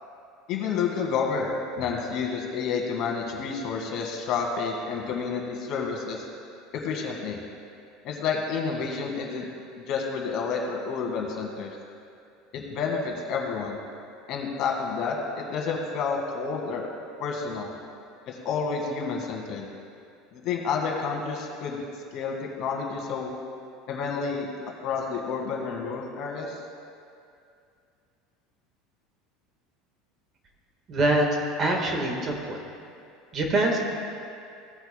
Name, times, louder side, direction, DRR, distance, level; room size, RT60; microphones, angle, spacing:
voice 1, 0.5-1.5 1.8-6.3 6.7-7.4 8.0-9.5 9.8-11.7 12.5-13.8 14.3-16.9 17.2-17.7 18.3-19.7 20.3-21.8 22.1-23.3 23.9-24.5 24.8-26.6, left 5 dB, 50° left, 0 dB, 1.7 m, -30 dB
voice 2, 30.9-31.3 31.6-32.6 33.3-33.8, right 2 dB, 35° right, 1 dB, 1.4 m, -24 dB
16.5 x 8.0 x 2.2 m, 2.4 s
supercardioid pair, 140°, 0 cm